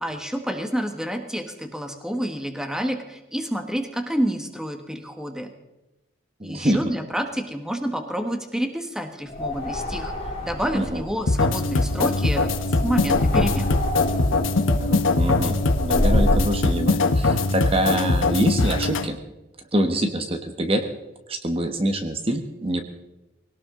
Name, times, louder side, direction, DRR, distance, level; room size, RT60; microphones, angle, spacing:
voice 1, 0.0-5.5 6.4-10.1 10.4-13.7, equal, 5° right, 6 dB, 1.3 m, -29 dB
voice 2, 6.4-6.9 10.7-11.0 14.8-19.2 19.7-20.9 21.3-22.8, right 1 dB, 30° right, 7 dB, 1.2 m, -25 dB
sound 1, 9.3-16.6, equal, 30° left, 4.7 m, -28 dB
sound 2, 11.3-19.1, left 3 dB, 85° left, 1.0 m, -21 dB
21.0 x 18.0 x 3.8 m, 0.99 s
head